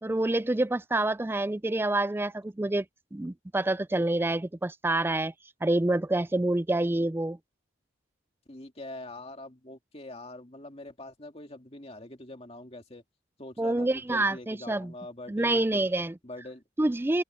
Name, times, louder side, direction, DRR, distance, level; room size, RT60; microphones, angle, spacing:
voice 1, 0.0-2.8 3.1-5.3 5.6-7.4 13.6-14.9 15.3-16.2 16.8-17.2, right 2 dB, 10° right, 0.3 m, -27 dB
voice 2, 8.5-13.0 13.4-15.9 16.2-16.6, left 1 dB, 30° left, 2.5 m, -44 dB
head